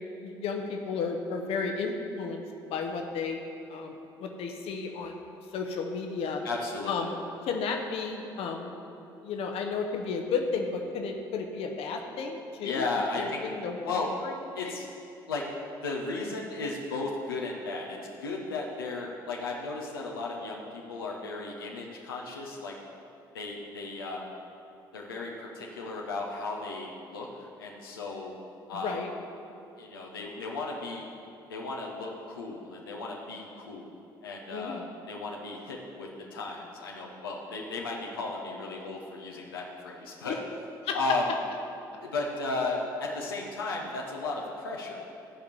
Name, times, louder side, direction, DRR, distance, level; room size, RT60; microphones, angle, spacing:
voice 1, 0.0-2.4 2.7-3.4 3.7-3.9 4.2-5.2 5.5-6.4 6.9-7.2 7.4-8.8 9.2-12.9 13.2-14.3 14.6-14.7 28.7-29.1 34.5-34.9 40.8-41.0, left 5 dB, 55° left, 3 dB, 1.0 m, -33 dB
voice 2, 6.4-7.1 12.6-13.4 13.9-14.1 14.5-14.9 15.3-15.4 15.8-22.7 23.3-24.3 24.9-28.3 28.7-29.0 29.8-31.0 31.5-33.9 34.2-34.8 35.1-40.4 40.9-41.3 42.0-45.0, left 3 dB, 80° left, -2 dB, 1.0 m, -35 dB
13.0 x 5.2 x 7.1 m, 2.7 s
figure-of-eight pair, 50°, 12 cm